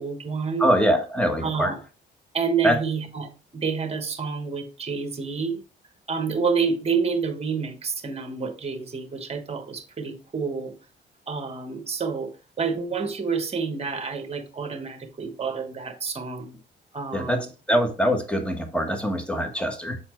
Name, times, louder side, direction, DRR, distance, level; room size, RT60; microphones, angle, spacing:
voice 1, 0.0-0.7 1.4-1.8 2.3-5.6 6.1-10.7 11.3-16.6 16.9-17.5, right 5 dB, 30° right, 1.3 m, -28 dB
voice 2, 0.6-1.7 2.6-2.8 17.1-20.0, equal, 5° left, 1.2 m, -23 dB
7.2 x 4.3 x 3.0 m
cardioid pair, 90°, 20 cm